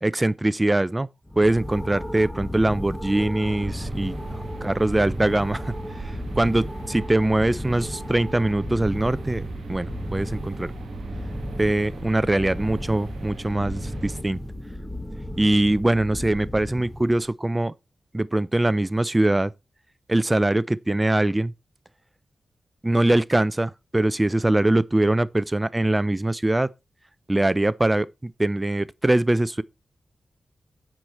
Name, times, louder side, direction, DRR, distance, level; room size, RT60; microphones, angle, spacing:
voice 1, 0.0-1.1 1.4-4.2 4.6-5.7 6.0-10.7 11.6-14.4 15.4-17.7 18.1-19.5 20.1-21.5 22.8-26.7 27.3-29.6, right 1 dB, 25° right, 0.4 m, -22 dB
sound 1, 1.3-17.3, left 1 dB, 5° left, 1.4 m, -34 dB
sound 2, 3.4-14.2, right 6 dB, 80° right, 0.9 m, -40 dB
9.1 x 4.9 x 4.3 m
supercardioid pair, 40°, 0 cm